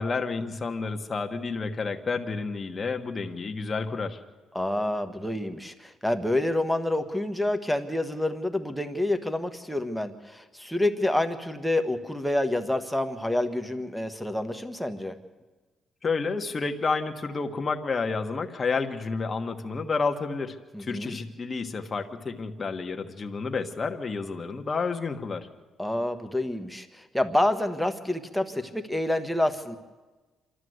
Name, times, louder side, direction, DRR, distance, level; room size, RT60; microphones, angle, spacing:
voice 1, 0.0-4.2 16.0-25.5, left 4 dB, 30° left, 5 dB, 1.5 m, -30 dB
voice 2, 4.5-15.1 20.7-21.2 25.8-29.8, left 1 dB, ahead, 6 dB, 1.3 m, -28 dB
27.0 x 13.0 x 8.0 m, 1.2 s
cardioid pair, 130°, 0 cm